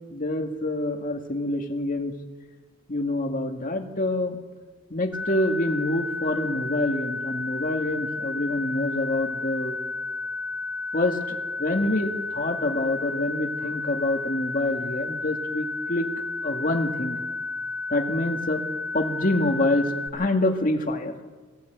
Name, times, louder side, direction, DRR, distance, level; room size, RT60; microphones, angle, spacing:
voice 1, 0.1-2.1 2.9-4.4 4.9-9.8 10.9-16.1 16.4-17.2 17.9-18.6 18.9-21.2, left 1 dB, 45° left, 4 dB, 1.9 m, -26 dB
sound 1, 5.1-20.1, left 3 dB, 75° left, 3.2 m, -32 dB
21.0 x 15.5 x 8.1 m, 1.4 s
head